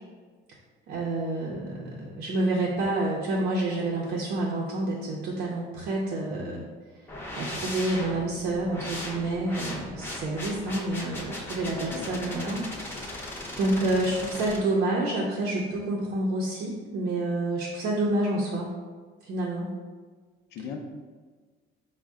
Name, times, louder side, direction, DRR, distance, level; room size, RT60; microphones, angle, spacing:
voice 1, 0.9-6.6 7.4-13.3 13.6-18.7 19.2-19.7, right 2 dB, 55° right, -3 dB, 0.6 m, -28 dB
sound 1, 7.1-14.6, left 1 dB, 10° left, 0.6 m, -38 dB
voice 2, 11.6-12.3 20.5-20.8, left 6 dB, 70° left, 4 dB, 0.5 m, -38 dB
5.2 x 2.1 x 3.5 m, 1.5 s
cardioid pair, 180°, 19 cm